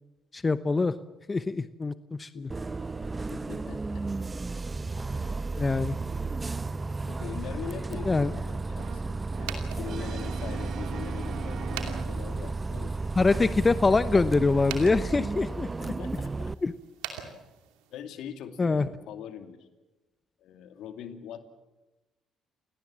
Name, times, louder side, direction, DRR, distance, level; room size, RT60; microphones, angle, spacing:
voice 1, 0.3-0.9 1.3-2.5 5.6-6.0 8.1-8.3 13.2-15.7 16.6-16.7 18.6-18.9, left 3 dB, 30° left, 13 dB, 0.9 m, -24 dB
voice 2, 2.3-2.7 3.2-4.0 7.1-12.9 15.8-16.5 17.2-17.4 17.9-19.7 20.4-21.4, left 8 dB, 75° left, 7 dB, 2.4 m, -42 dB
Bus, 2.5-16.5, right 3 dB, 25° right, 0.8 m, -33 dB
Brass instrument, 8.8-12.6, right 9 dB, 65° right, 1.4 m, -43 dB
sound 1, 9.3-18.0, right 9 dB, 85° right, 2.7 m, -45 dB
28.5 x 18.5 x 7.5 m, 1.1 s
supercardioid pair, 60°, 0 cm